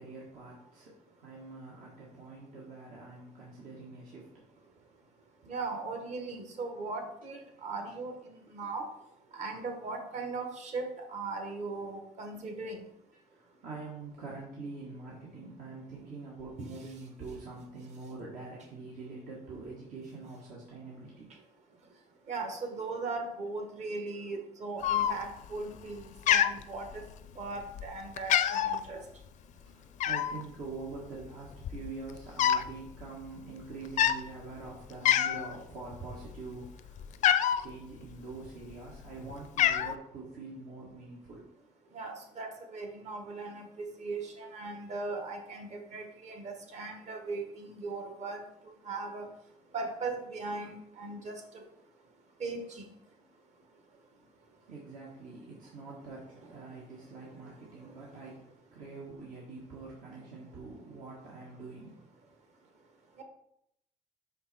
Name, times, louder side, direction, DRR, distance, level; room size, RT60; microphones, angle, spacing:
voice 1, 0.0-4.4 13.1-21.3 29.4-37.3 37.6-41.4 54.7-62.0, right 3 dB, 75° right, -5 dB, 1.7 m, -45 dB
voice 2, 5.5-8.9 9.3-10.8 11.1-12.8 22.3-27.0 27.4-29.0 41.9-48.4 48.9-49.3 49.7-51.6 52.4-52.9 63.2-63.3, right 3 dB, 55° right, 4 dB, 1.5 m, -38 dB
Cat, 24.8-25.5 25.8-26.0 26.3-27.3 27.7-27.9 28.2-28.8 30.0-30.4 31.2-31.3 31.5-32.7 33.0-33.2 33.8-34.2 34.7-34.8 35.0-35.6 36.0-37.6 38.4-39.0 39.3-39.9, left 10 dB, 65° left, 0.5 m, -26 dB
5.5 x 5.4 x 4.3 m, 0.78 s
cardioid pair, 95°, 14 cm